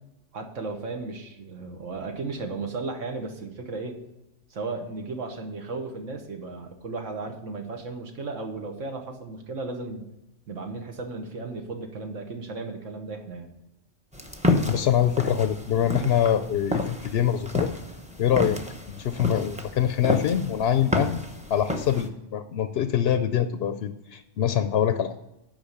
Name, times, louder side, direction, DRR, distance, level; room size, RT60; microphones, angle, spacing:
voice 1, 0.3-4.0 4.5-10.1 10.5-13.5, right 3 dB, 80° right, 4 dB, 1.5 m, -35 dB
sound 1, 14.1-22.1, left 2 dB, 5° right, 0.6 m, -30 dB
voice 2, 14.7-17.7 18.2-18.6 18.9-21.2 21.5-25.1, left 9 dB, 65° left, 10 dB, 0.7 m, -24 dB
8.9 x 5.3 x 6.5 m, 0.92 s
omnidirectional pair, 1.3 m